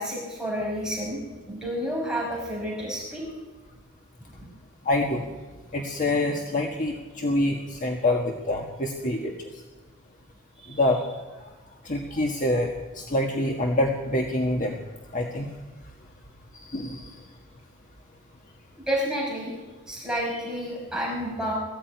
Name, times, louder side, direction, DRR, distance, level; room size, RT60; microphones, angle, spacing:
voice 1, 0.0-3.3 10.6-10.8 18.9-19.5 19.9-21.5, equal, 5° right, -3 dB, 5.2 m, -30 dB
voice 2, 4.8-5.2 5.7-9.5 10.7-11.0 11.8-12.7 12.9-14.8 15.1-15.5 16.5-17.2, left 1 dB, 35° left, 2 dB, 1.6 m, -26 dB
20.5 x 15.5 x 9.3 m, 1.3 s
head